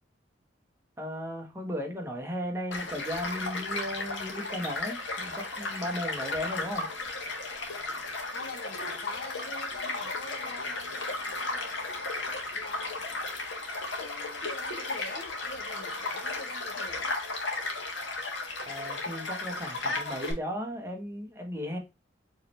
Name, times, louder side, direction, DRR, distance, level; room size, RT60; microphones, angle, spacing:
voice 1, 1.0-6.9 18.7-21.8, equal, 15° right, 1.0 m, -36 dB
Child speech kid speaking / Stream / Car passing by, 2.7-20.3, left 2 dB, 70° left, 1.3 m, -35 dB
voice 2, 8.3-12.0 12.5-13.6 14.0-17.2, left 3 dB, 55° left, 1.0 m, -45 dB
4.7 x 3.2 x 2.9 m
head